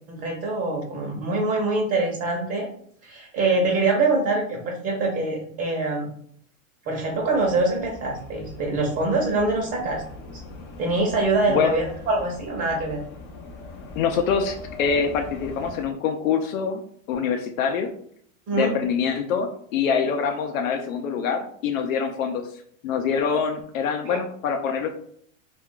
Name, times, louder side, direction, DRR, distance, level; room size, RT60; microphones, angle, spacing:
voice 1, 0.1-2.7 3.0-6.1 6.9-10.0 10.8-13.0 18.5-18.7 24.1-24.2, right 2 dB, 35° right, -1 dB, 0.8 m, -24 dB
sound 1, 7.0-15.9, left 3 dB, 30° left, 0.4 m, -41 dB
voice 2, 14.0-16.8 17.1-17.9 18.5-22.5 22.8-24.9, left 6 dB, 75° left, 5 dB, 0.6 m, -25 dB
2.5 x 2.2 x 3.6 m, 0.62 s
supercardioid pair, 130°, 40 cm